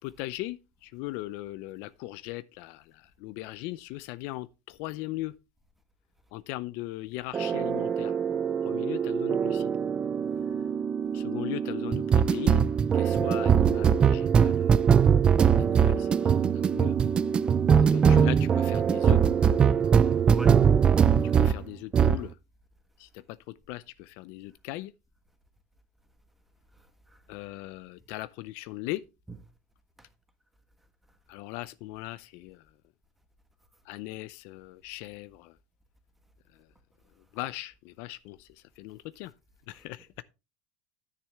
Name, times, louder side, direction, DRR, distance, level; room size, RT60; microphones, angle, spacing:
voice 1, 0.0-5.3 6.3-8.2 8.6-9.7 11.1-12.6 12.9-14.8 15.1-17.0 17.7-19.2 21.4-22.4 23.0-24.9 27.3-29.0 31.3-32.6 33.9-35.6 36.5-36.7 37.3-39.3 39.7-40.2, left 18 dB, 55° left, 0.5 m, -39 dB
sound 1, 7.3-21.6 21.9-22.2, right 7 dB, 20° right, 0.5 m, -22 dB
voice 2, 20.3-20.7 21.3-21.5 27.1-27.2 29.3-29.5 39.7-39.8, right 5 dB, 5° right, 1.5 m, -38 dB
10.0 x 9.5 x 3.5 m
supercardioid pair, 155°, 5 cm